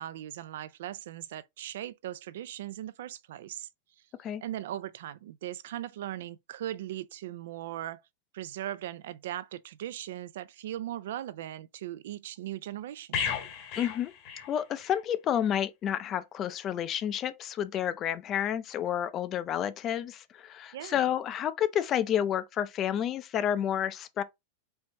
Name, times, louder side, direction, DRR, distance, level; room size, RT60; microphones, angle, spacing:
voice 1, 0.0-3.7 4.0-4.1 4.4-8.0 8.3-13.3 20.7-21.0, right 12 dB, 75° right, 0.4 m, -39 dB
sound 1, 13.1-15.0 15.3-15.5, left 7 dB, 45° left, 1.0 m, -35 dB
voice 2, 13.8-14.1 14.5-24.2, left 10 dB, 25° left, 0.4 m, -30 dB
4.4 x 2.8 x 3.3 m
supercardioid pair, 160°, 0 cm